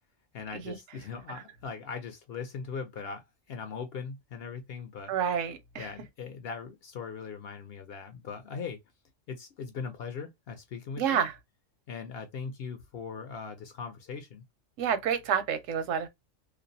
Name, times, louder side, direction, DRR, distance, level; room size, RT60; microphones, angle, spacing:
voice 1, 0.3-5.1 5.8-8.8 9.3-11.3 11.9-14.4, left 5 dB, 60° left, 0.7 m, -40 dB
voice 2, 5.1-5.9 11.0-11.3 14.8-16.1, right 8 dB, 85° right, 1.0 m, -29 dB
2.5 x 2.0 x 2.6 m
omnidirectional pair, 1.3 m